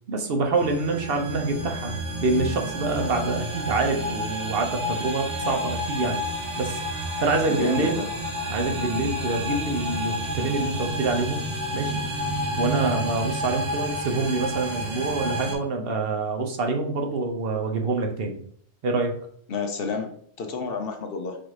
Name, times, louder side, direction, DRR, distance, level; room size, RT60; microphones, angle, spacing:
voice 1, 0.1-1.9 2.2-6.2 6.6-6.8 7.2-8.0 8.5-11.4 11.7-12.0 12.6-18.4 18.8-19.1, right 3 dB, 60° right, 3 dB, 0.9 m, -26 dB
sound 1, 0.5-15.6, equal, 80° right, 1.5 m, -30 dB
voice 2, 7.5-8.1 19.5-20.1 20.4-21.4, left 4 dB, 60° left, 5 dB, 0.8 m, -29 dB
4.2 x 2.6 x 4.7 m, 0.62 s
omnidirectional pair, 1.2 m